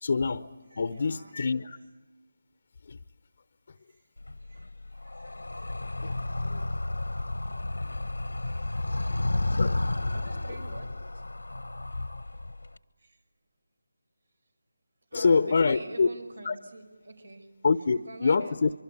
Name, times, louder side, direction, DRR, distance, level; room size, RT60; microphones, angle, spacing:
voice 1, 0.0-1.8 2.8-3.0 3.7-3.8 6.0-6.1 6.4-6.7 7.8-8.0 9.5-9.8 10.5-10.6 15.1-16.1 16.4-16.6 17.6-18.7, left 4 dB, 50° left, 13 dB, 0.8 m, -26 dB
voice 2, 0.7-1.4 3.9-4.1 4.4-5.4 8.3-9.5 10.1-11.2 13.0-13.2 15.1-17.5 18.1-18.5, right 2 dB, 75° right, 8 dB, 5.2 m, -47 dB
Animal, 4.2-12.8, left 2 dB, 85° left, 1.2 m, -32 dB
25.0 x 24.0 x 8.5 m, 1.3 s
figure-of-eight pair, 160°, 0 cm